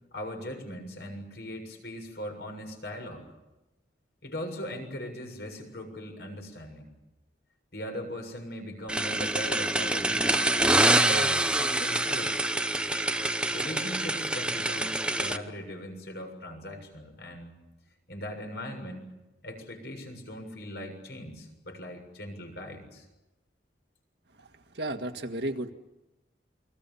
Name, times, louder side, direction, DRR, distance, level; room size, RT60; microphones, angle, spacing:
voice 1, 0.1-3.2 4.2-6.9 7.7-10.5 11.0-12.4 13.5-17.5 18.1-19.1 19.4-23.1, equal, 65° left, 4 dB, 7.2 m, -39 dB
sound 1, 8.9-15.4, right 1 dB, 5° right, 0.9 m, -26 dB
voice 2, 24.4-25.7, right 1 dB, 75° right, 5 dB, 1.9 m, -34 dB
28.5 x 22.5 x 7.2 m, 0.99 s
head